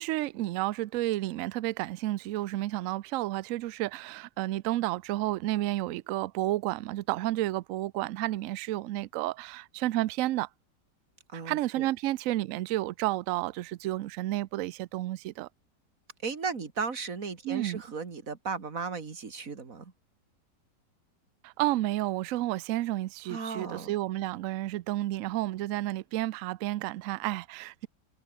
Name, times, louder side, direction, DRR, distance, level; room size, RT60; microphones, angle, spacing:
voice 1, 0.0-10.5 11.5-15.5 17.4-17.8 21.4-27.9, right 16 dB, 90° right, 0.7 m, -31 dB
voice 2, 11.3-11.9 16.2-19.9 23.3-23.9, right 5 dB, 45° right, 2.7 m, -36 dB
omnidirectional pair, 2.0 m